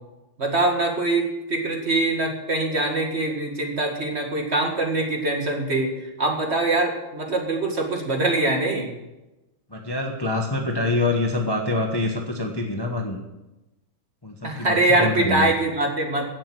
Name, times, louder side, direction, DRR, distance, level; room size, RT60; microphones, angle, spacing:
voice 1, 0.4-8.9 14.4-16.3, right 2 dB, 35° right, 2 dB, 2.0 m, -23 dB
voice 2, 9.7-13.2 14.2-15.5, left 2 dB, 15° left, 2 dB, 1.0 m, -25 dB
16.5 x 7.4 x 6.2 m, 0.99 s
omnidirectional pair, 2.2 m